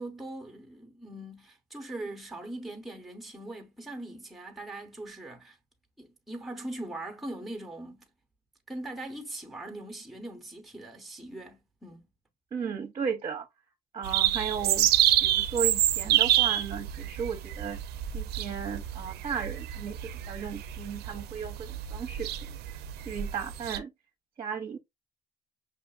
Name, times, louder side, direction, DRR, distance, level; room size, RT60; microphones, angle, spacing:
voice 1, 0.0-5.6 6.0-8.1 8.7-12.0, right 1 dB, ahead, 0.8 m, -41 dB
voice 2, 12.5-13.5 13.9-14.9 15.2-17.8 18.1-20.0 20.3-22.3 23.0-23.9 24.4-24.8, right 6 dB, 35° right, 0.7 m, -35 dB
sound 1, 14.0-23.8, right 13 dB, 75° right, 0.4 m, -28 dB
5.6 x 2.4 x 2.4 m
cardioid pair, 110°, 17 cm